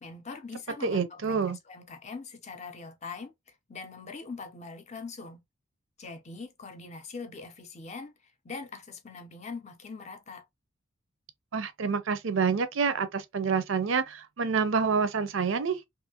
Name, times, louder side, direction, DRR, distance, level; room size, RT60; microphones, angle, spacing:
voice 1, 0.0-5.4 6.0-10.4, left 4 dB, 35° left, 0.5 m, -42 dB
voice 2, 0.8-1.6 11.5-15.8, right 5 dB, 65° right, 0.5 m, -27 dB
2.6 x 2.6 x 2.7 m
head